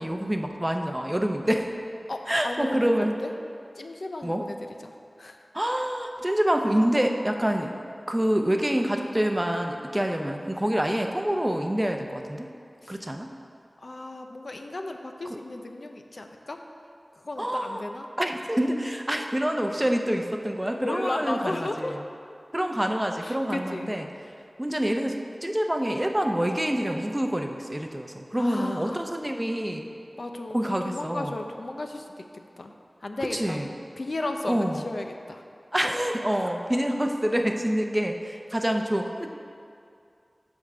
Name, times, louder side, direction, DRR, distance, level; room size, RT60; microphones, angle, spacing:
voice 1, 0.0-1.7 2.3-3.1 4.2-4.4 5.5-7.7 8.1-12.5 12.9-13.3 15.3-15.4 17.4-17.8 18.2-22.0 22.5-24.1 24.6-29.9 30.5-31.4 33.3-33.7 34.5-34.8 35.7-39.3, equal, 15° right, 4 dB, 0.6 m, -26 dB
voice 2, 2.1-3.3 3.8-4.6 4.8-4.9 5.2-5.4 12.8-13.0 13.8-16.6 17.2-18.1 20.8-22.0 23.2-23.9 28.4-29.0 30.2-32.2 32.6-32.7 33.0-33.6 34.0-35.4 36.4-36.5, left 2 dB, 70° left, 4 dB, 0.5 m, -34 dB
9.0 x 3.6 x 6.6 m, 2.4 s
wide cardioid pair, 65°, 0 cm